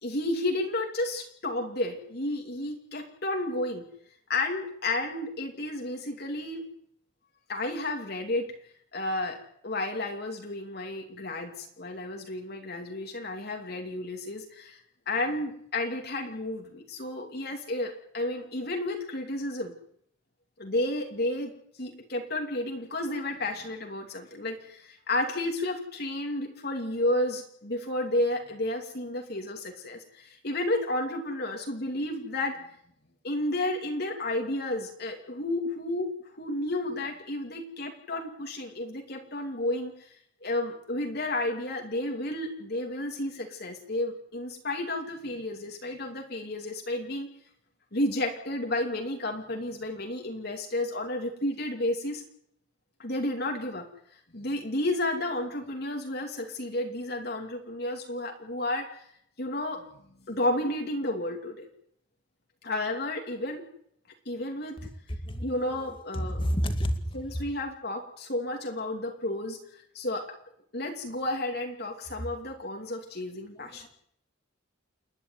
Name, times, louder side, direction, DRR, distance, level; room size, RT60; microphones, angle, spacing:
voice 1, 0.0-3.9 4.3-6.6 7.5-8.5 8.9-19.8 20.6-32.7 33.2-36.1 36.4-47.3 47.9-52.2 53.0-59.1 59.4-59.8 60.3-61.7 62.6-63.7 64.2-64.8 65.4-66.4 67.1-70.3 70.7-73.9, left 1 dB, 55° left, 2 dB, 2.9 m, -32 dB
voice 2, 65.2-65.6 66.1-67.2 73.6-73.9, equal, 25° left, 7 dB, 2.4 m, -30 dB
29.0 x 11.0 x 9.4 m, 0.70 s
head